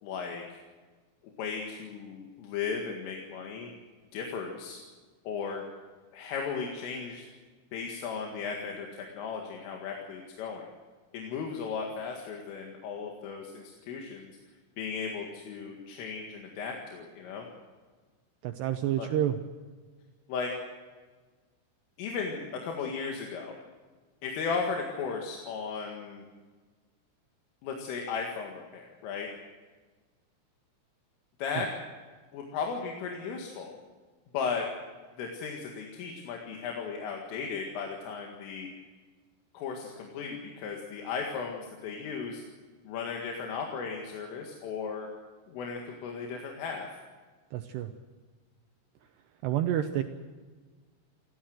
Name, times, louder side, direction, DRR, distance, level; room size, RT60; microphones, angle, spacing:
voice 1, 0.0-0.6 1.4-3.7 4.1-4.8 5.3-5.6 6.1-7.3 7.7-10.7 11.1-14.3 14.8-17.5 19.0-19.1 20.3-20.5 22.0-23.5 24.2-26.2 27.6-29.3 31.4-31.7 32.3-33.7 34.3-34.7 35.2-38.7 39.5-42.4 42.9-45.1 45.5-46.9, left 5 dB, 75° left, 1 dB, 4.4 m, -36 dB
voice 2, 18.4-19.4 31.6-31.7 47.5-47.9 49.4-50.0, right 11 dB, 80° right, 7 dB, 2.4 m, -29 dB
28.0 x 14.5 x 7.8 m, 1.4 s
omnidirectional pair, 6.0 m